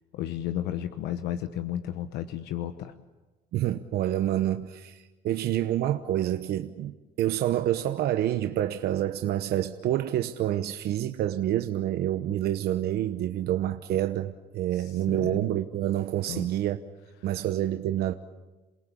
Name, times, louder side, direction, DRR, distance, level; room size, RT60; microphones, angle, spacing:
voice 1, 0.1-2.9 14.7-15.5 16.3-16.5, left 11 dB, 85° left, 1.1 m, -33 dB
voice 2, 3.5-16.8 17.2-18.1, right 12 dB, 70° right, 1.0 m, -28 dB
28.0 x 18.5 x 8.6 m
cardioid pair, 110°, 17 cm